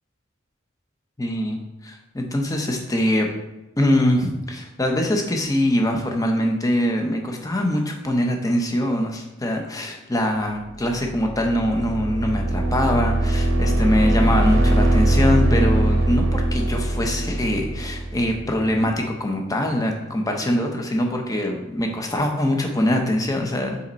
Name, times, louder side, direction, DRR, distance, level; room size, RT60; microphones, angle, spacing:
voice 1, 1.2-1.6 1.8-3.3 3.8-23.8, left 1 dB, 20° left, 2 dB, 0.8 m, -23 dB
sound 1, 10.9-18.6, right 1 dB, 80° right, 0.9 m, -21 dB
5.7 x 4.1 x 4.1 m, 1.0 s
head